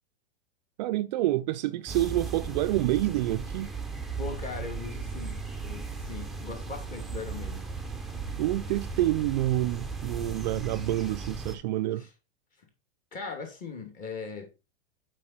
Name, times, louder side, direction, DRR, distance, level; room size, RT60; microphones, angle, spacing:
voice 1, 0.8-3.7 8.4-12.1, right 15 dB, 50° right, 0.4 m, -28 dB
sound 1, 1.9-11.6, right 4 dB, ahead, 0.7 m, -36 dB
voice 2, 4.2-7.7 12.0-12.1 13.1-14.5, left 4 dB, 25° left, 2.5 m, -39 dB
7.3 x 5.3 x 4.3 m
supercardioid pair, 150°, 30 cm